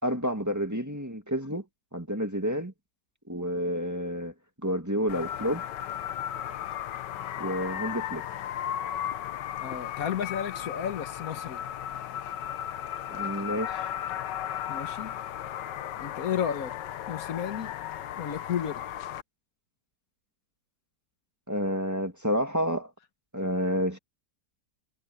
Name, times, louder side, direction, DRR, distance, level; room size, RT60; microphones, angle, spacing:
voice 1, 0.0-1.7 1.9-2.7 3.3-4.3 4.6-5.6 7.4-8.2 13.1-13.9 21.5-22.9 23.3-24.0, equal, 10° right, 2.0 m, -29 dB
sound 1, 5.1-19.2, left 11 dB, 90° left, 1.5 m, -35 dB
voice 2, 9.6-11.6 14.7-15.2 16.0-16.7 17.1-17.7 18.2-18.8, left 8 dB, 55° left, 1.6 m, -32 dB
omnidirectional pair, 1.8 m